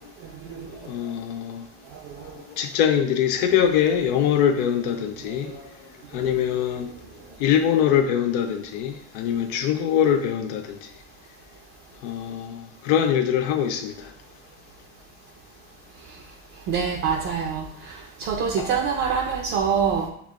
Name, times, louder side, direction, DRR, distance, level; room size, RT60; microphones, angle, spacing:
voice 1, 0.8-1.7 2.5-5.7 6.1-6.9 7.4-10.8 12.0-14.1 18.6-18.7, left 9 dB, 80° left, 5 dB, 0.5 m, -23 dB
voice 2, 16.7-17.9 18.2-20.1, right 6 dB, 45° right, 1 dB, 0.5 m, -25 dB
6.8 x 2.4 x 2.4 m, 0.68 s
cardioid pair, 140°, 29 cm